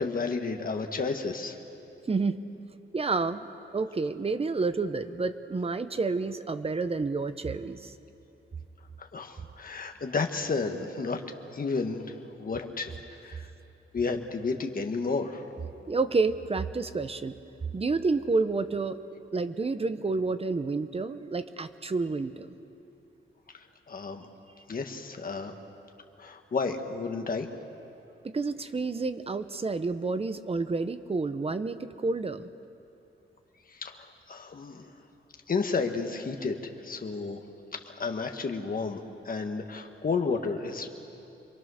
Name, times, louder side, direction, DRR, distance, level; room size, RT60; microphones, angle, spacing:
voice 1, 0.0-1.6 9.0-11.2 11.5-13.5 13.9-15.4 23.9-24.3 24.7-25.5 26.2-27.5 33.7-34.9 35.5-37.4 37.8-40.9, left 4 dB, 45° left, 4 dB, 1.6 m, -32 dB
voice 2, 2.9-7.9 15.9-17.4 17.7-19.0 19.3-22.6 28.2-32.5, right 3 dB, 30° right, 11 dB, 0.8 m, -29 dB
27.5 x 22.5 x 6.5 m, 2.9 s
wide cardioid pair, 135°, 21 cm